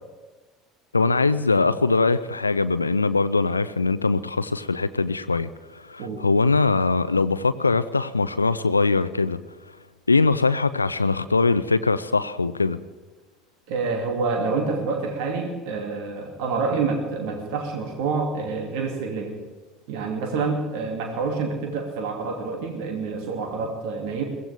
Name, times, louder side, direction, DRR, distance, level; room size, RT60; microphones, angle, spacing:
voice 1, 0.9-9.4 10.1-12.8, left 3 dB, 85° left, 14 dB, 0.4 m, -22 dB
voice 2, 13.7-19.4 19.9-24.2, right 4 dB, 60° right, 3 dB, 2.6 m, -27 dB
22.0 x 17.0 x 3.5 m, 1.3 s
figure-of-eight pair, 65°, 0 cm